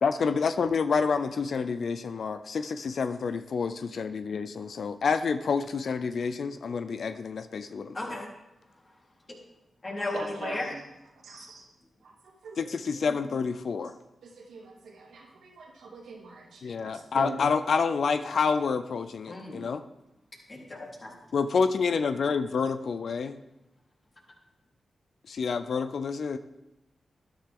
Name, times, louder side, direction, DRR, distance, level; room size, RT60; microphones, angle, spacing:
voice 1, 0.0-8.0 12.6-14.0 16.6-19.8 21.3-23.4 25.3-26.4, left 5 dB, 70° left, 11 dB, 0.5 m, -28 dB
voice 2, 7.9-8.3 9.8-10.7 11.4-11.5 19.3-19.7 20.5-21.1, left 2 dB, 45° left, -3 dB, 4.0 m, -35 dB
voice 3, 10.0-10.6 11.2-11.6 12.0-12.6 14.2-17.4, right 3 dB, 85° right, -2 dB, 2.6 m, -43 dB
12.5 x 10.5 x 3.8 m, 0.91 s
supercardioid pair, 40°, 0 cm